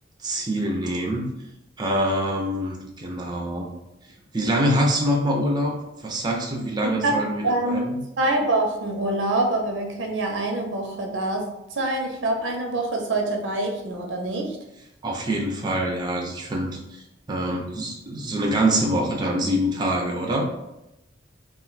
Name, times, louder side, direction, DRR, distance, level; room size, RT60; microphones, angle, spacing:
voice 1, 0.2-1.3 1.8-3.7 4.3-5.7 6.0-8.0 15.0-16.7 17.3-20.5, right 1 dB, 25° right, 0 dB, 0.5 m, -25 dB
voice 2, 6.8-7.9 8.2-11.4 11.7-14.6, right 2 dB, 90° right, 2 dB, 0.6 m, -25 dB
2.4 x 2.2 x 3.9 m, 0.90 s
head